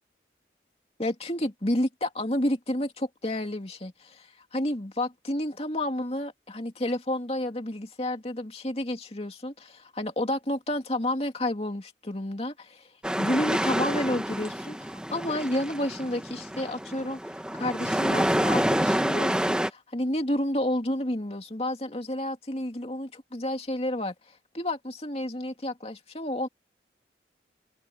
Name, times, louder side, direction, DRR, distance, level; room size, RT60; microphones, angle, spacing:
voice 1, 1.0-12.9 13.2-17.2 17.5-24.1 24.5-26.5, left 1 dB, 35° left, 2.6 m, -30 dB
sound 1, 13.0-19.7, equal, 5° right, 1.1 m, -28 dB
head